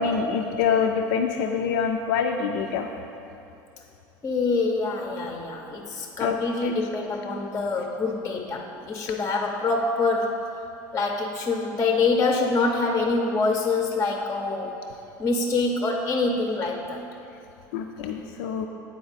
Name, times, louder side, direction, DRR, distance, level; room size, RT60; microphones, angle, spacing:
voice 1, 0.0-2.9 6.2-6.4 6.6-6.7 17.7-18.7, left 6 dB, 75° left, 3 dB, 0.4 m, -25 dB
voice 2, 4.2-10.5 10.9-14.8 15.2-17.0, left 3 dB, 25° left, 2 dB, 0.5 m, -25 dB
8.6 x 4.1 x 4.0 m, 2.8 s
hypercardioid pair, 85°, 11 cm